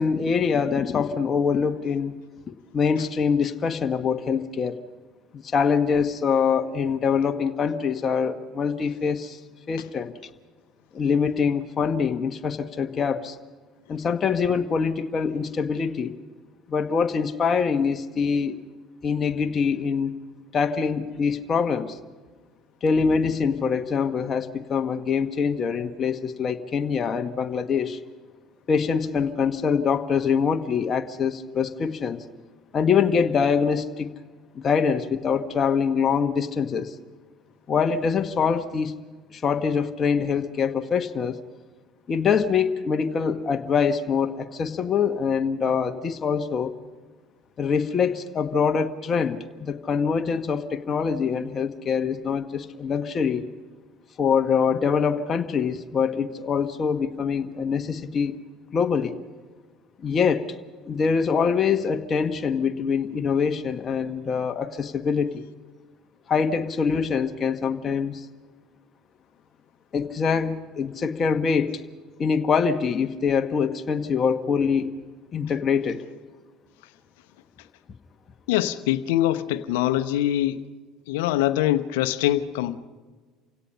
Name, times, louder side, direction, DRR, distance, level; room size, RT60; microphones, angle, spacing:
voice 1, 0.0-2.2 2.5-4.8 5.3-9.4 9.7-10.1 10.9-13.4 13.9-16.1 16.7-18.6 19.0-20.2 20.5-22.0 22.8-28.0 28.7-32.2 32.7-34.1 34.5-36.9 37.7-38.9 39.3-41.4 42.1-46.7 47.6-53.4 54.2-58.3 58.7-59.2 60.0-60.5 60.9-65.4 66.3-68.3 69.9-71.8 72.2-74.9 75.3-76.0, left 6 dB, 40° left, 1.4 m, -24 dB
voice 2, 78.5-80.6 81.1-82.8, left 13 dB, 75° left, 1.0 m, -23 dB
28.5 x 17.0 x 5.6 m
hypercardioid pair, 70°, 0 cm